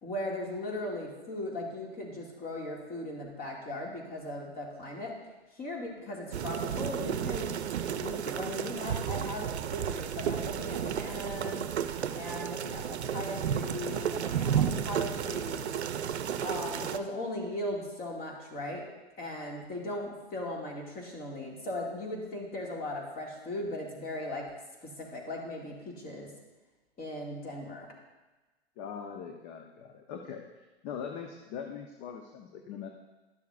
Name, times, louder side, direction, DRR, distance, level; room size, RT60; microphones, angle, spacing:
voice 1, 0.0-5.1 5.5-7.6 7.9-11.7 12.1-15.8 16.4-18.9 19.2-24.5 24.8-26.3 27.0-27.9, left 1 dB, 30° left, -1 dB, 2.2 m, -38 dB
sound 1, 6.3-17.0, right 8 dB, 90° right, 0.6 m, -32 dB
voice 2, 28.8-30.5 30.8-32.9, left 7 dB, 45° left, 4 dB, 0.9 m, -41 dB
12.5 x 6.9 x 2.5 m, 1.2 s
hypercardioid pair, 120°, 32 cm